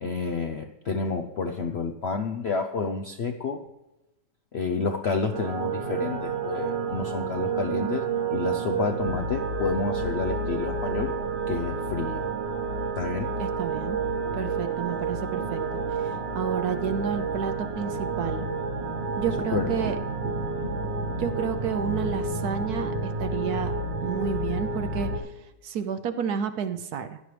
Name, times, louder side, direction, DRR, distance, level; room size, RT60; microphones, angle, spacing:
voice 1, 0.0-3.6 4.5-11.1 11.5-12.3 12.9-13.3 19.5-19.7, left 4 dB, 60° left, 4 dB, 0.6 m, -29 dB
sound 1, 5.3-25.2, right 4 dB, 85° right, 2.3 m, -30 dB
voice 2, 13.4-14.0 14.3-18.5 19.2-20.0 21.1-23.7 24.0-25.3 25.6-27.2, right 7 dB, 65° right, 9 dB, 1.1 m, -31 dB
sound 2, 13.7-23.6, right 5 dB, 50° right, 0.8 m, -43 dB
16.0 x 11.0 x 3.3 m, 0.99 s
omnidirectional pair, 2.0 m